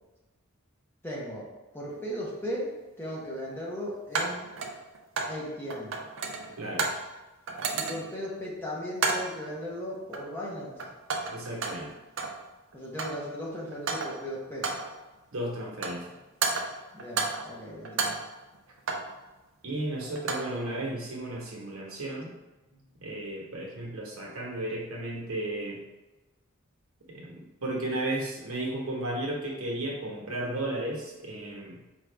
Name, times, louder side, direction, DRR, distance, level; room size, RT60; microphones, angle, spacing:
voice 1, 1.0-1.5 1.7-4.5 5.2-5.9 7.7-10.9 12.7-14.7 16.9-18.2 22.7-22.9, equal, 10° left, -5 dB, 0.9 m, -37 dB
sound 1, 1.9-2.0 4.1-5.4 5.7-7.1 7.5-8.2 9.0-9.4 10.1-10.5 10.8-12.4 12.7-13.3 13.7-14.3 14.6-15.0 15.6-16.1 16.4-17.5 17.8-19.2 20.0-20.6, right 4 dB, 60° right, 0.5 m, -32 dB
voice 2, 6.6-6.9 11.3-11.9 15.3-16.1 19.6-22.3 23.0-25.8 27.1-31.8, right 1 dB, 75° right, -2 dB, 1.0 m, -34 dB
4.7 x 2.5 x 3.3 m, 1.1 s
head